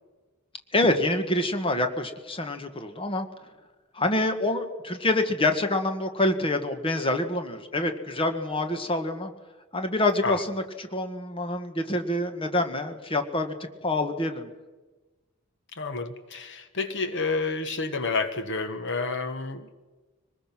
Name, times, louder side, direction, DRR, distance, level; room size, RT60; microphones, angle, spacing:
voice 1, 0.7-3.3 3.9-9.3 9.7-13.5 13.8-14.5, left 2 dB, 25° left, 7 dB, 1.6 m, -26 dB
voice 2, 15.8-19.7, left 4 dB, 60° left, 10 dB, 1.3 m, -29 dB
24.5 x 20.0 x 6.1 m, 1.2 s
head